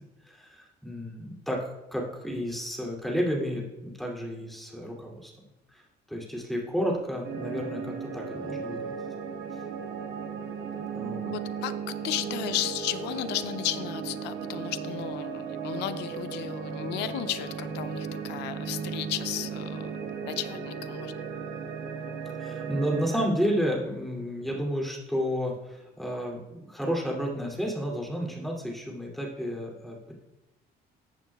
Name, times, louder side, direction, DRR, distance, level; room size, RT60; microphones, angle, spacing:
voice 1, 0.0-5.3 5.7-5.8 6.1-8.9 10.9-11.3 22.4-30.1, equal, ahead, -2 dB, 2.8 m, -31 dB
sound 1, 7.2-23.3, right 6 dB, 65° right, 1.2 m, -36 dB
voice 2, 11.2-20.0 20.3-21.1, left 13 dB, 85° left, 13 dB, 0.6 m, -34 dB
14.0 x 8.4 x 2.4 m, 0.99 s
cardioid pair, 110°, 17 cm